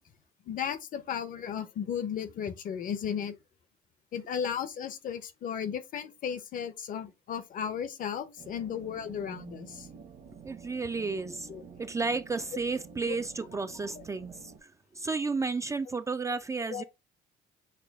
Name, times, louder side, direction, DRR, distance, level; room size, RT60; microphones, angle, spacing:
voice 1, 0.5-3.4 4.1-9.9 11.5-11.6 13.1-13.2 14.0-14.1 16.7-16.8, left 8 dB, 55° left, 0.7 m, -35 dB
sound 1, 8.4-14.6, right 6 dB, 55° right, 1.0 m, -50 dB
voice 2, 10.4-11.5 11.8-14.3 15.0-16.8, right 4 dB, 20° right, 0.3 m, -32 dB
6.6 x 2.2 x 3.4 m
cardioid pair, 110°, 17 cm